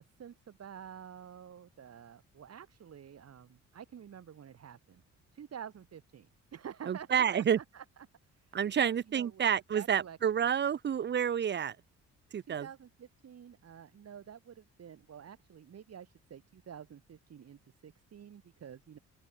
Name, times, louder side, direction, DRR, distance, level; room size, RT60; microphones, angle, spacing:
voice 1, 0.0-5.0 5.3-7.8 8.4-9.5 9.7-10.2 12.5-19.0, right 8 dB, 55° right, 4.8 m, -49 dB
voice 2, 6.9-7.6 8.5-11.8 12.3-12.7, right 8 dB, 35° right, 0.5 m, -29 dB
open air
cardioid pair, 90°, 30 cm